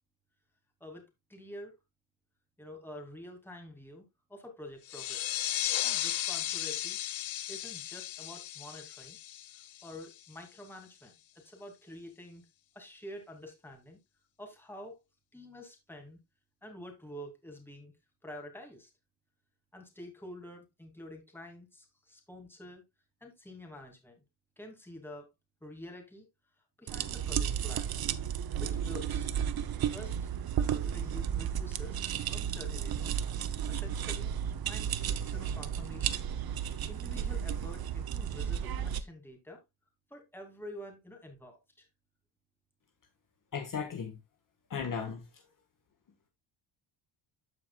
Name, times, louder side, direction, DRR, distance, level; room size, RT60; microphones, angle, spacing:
voice 1, 0.8-1.8 2.6-4.0 4.3-5.5 5.8-7.0 7.5-9.2 9.5-12.4 12.7-14.0 14.4-15.0 15.3-16.2 16.6-17.9 18.2-18.9 19.7-22.8 23.2-24.2 24.6-25.3 25.6-26.3 26.8-27.9 28.6-29.3 29.9-32.0 32.3-33.1 33.7-34.3 34.7-39.6 40.1-41.9, left 1 dB, 5° left, 2.6 m, -48 dB
sound 1, 4.9-10.2, left 13 dB, 70° left, 0.9 m, -35 dB
sound 2, 26.9-39.0, right 9 dB, 45° right, 0.8 m, -33 dB
voice 2, 43.5-44.2 44.7-45.4, left 6 dB, 40° left, 1.5 m, -36 dB
14.0 x 4.8 x 2.3 m
cardioid pair, 140°, 49 cm